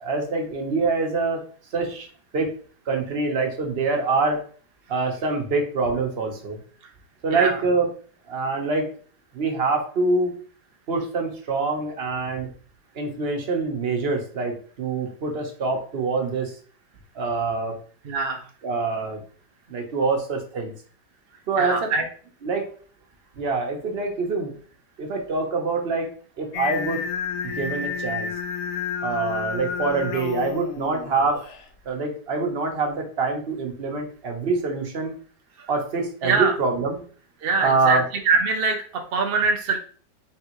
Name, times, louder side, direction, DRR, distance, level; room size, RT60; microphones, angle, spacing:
voice 1, 0.0-1.4 1.7-2.1 2.3-2.5 2.9-4.4 4.9-6.6 7.2-7.9 8.3-8.9 9.3-10.3 10.9-12.5 12.9-16.6 17.1-17.8 18.6-19.2 19.7-20.7 21.5-21.9 22.4-22.7 23.3-24.5 25.0-27.0 27.4-28.3 29.0-31.4 31.8-35.1 35.7-37.0 37.6-38.0, right 3 dB, 45° right, 2 dB, 0.9 m, -25 dB
voice 2, 18.0-18.4 21.6-22.1 36.2-36.5 37.4-38.0 38.2-39.8, right 4 dB, 85° right, 3 dB, 0.5 m, -23 dB
Singing, 26.5-31.6, left 7 dB, 75° left, 0.6 m, -30 dB
4.5 x 3.4 x 3.0 m, 0.43 s
omnidirectional pair, 1.9 m